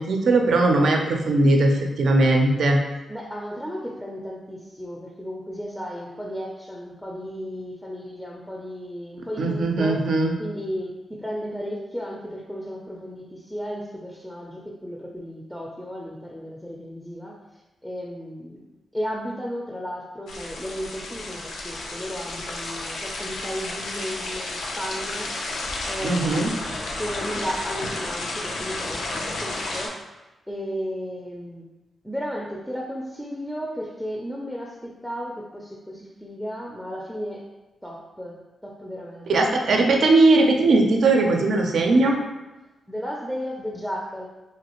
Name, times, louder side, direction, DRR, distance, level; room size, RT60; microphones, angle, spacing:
voice 1, 0.0-2.8 9.4-10.3 26.0-26.5 39.3-42.2, right 2 dB, 75° right, 2 dB, 0.4 m, -19 dB
voice 2, 3.1-10.0 10.4-17.4 17.8-18.6 18.9-25.3 25.9-29.9 30.5-31.7 32.0-37.4 37.8-38.3 38.6-39.3 42.9-44.3, equal, ahead, -2 dB, 0.4 m, -34 dB
sound 1, 20.3-29.9, left 2 dB, 85° left, 0.4 m, -32 dB
3.1 x 2.4 x 2.9 m, 1.1 s
cardioid pair, 65°, 0 cm